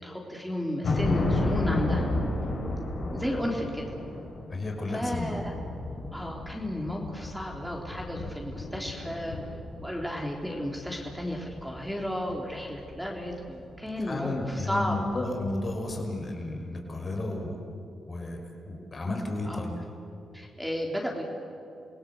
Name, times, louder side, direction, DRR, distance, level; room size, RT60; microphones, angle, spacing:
voice 1, 0.0-2.1 3.1-3.9 4.9-5.5 6.1-9.4 9.8-15.3 19.4-19.6 20.3-21.2, equal, ahead, -1 dB, 3.7 m, -33 dB
sound 1, 0.8-15.3 15.5-15.7, left 2 dB, 65° left, 6.7 m, -33 dB
voice 2, 4.5-5.3 14.1-17.6 18.1-19.8, left 2 dB, 40° left, 2 dB, 5.7 m, -32 dB
28.5 x 18.0 x 8.0 m, 2.6 s
supercardioid pair, 55°, 0 cm